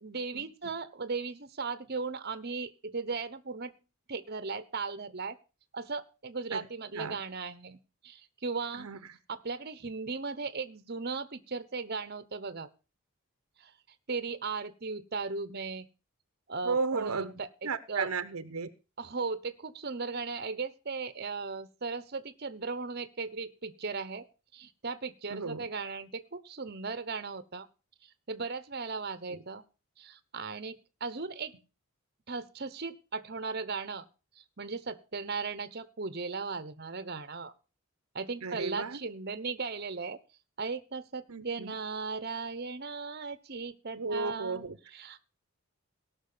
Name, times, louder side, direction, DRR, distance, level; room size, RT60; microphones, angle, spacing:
voice 1, 0.0-3.8 4.1-5.4 5.7-8.9 9.3-12.7 13.6-13.7 14.1-15.9 16.5-17.5 17.9-18.1 19.0-24.2 24.5-27.7 28.0-29.6 30.0-31.5 32.3-34.1 34.4-37.5 38.1-40.2 40.6-44.6 44.9-45.3, right 4 dB, 45° right, 1.0 m, -37 dB
voice 2, 8.7-9.1 16.6-17.3 17.6-18.7 25.3-25.7 29.3-29.4 38.4-39.0 41.3-41.7 43.9-44.8, right 4 dB, 70° right, 0.9 m, -34 dB
17.5 x 6.3 x 6.8 m
head